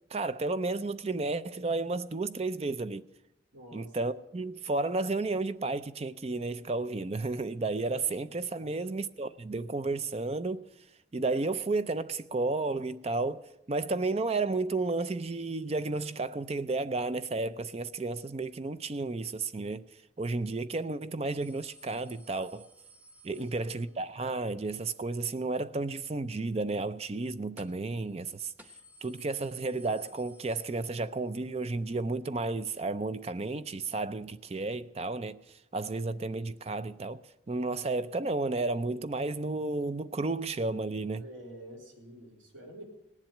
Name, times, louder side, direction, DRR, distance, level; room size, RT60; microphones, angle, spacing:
voice 1, 0.1-3.0 3.7-10.6 11.1-19.8 20.2-22.7 23.2-28.5 29.0-35.4 35.7-37.2 37.5-41.2, right 3 dB, 30° right, 0.4 m, -32 dB
voice 2, 3.5-3.9 8.1-8.7 23.3-23.8 41.2-42.8, right 1 dB, 75° right, 3.6 m, -48 dB
sound 1, 21.4-24.1 27.6-28.0 28.3-28.4 28.6-31.3 31.6-31.7 32.8-32.9, right 1 dB, 10° right, 0.8 m, -57 dB
18.5 x 7.4 x 9.0 m
head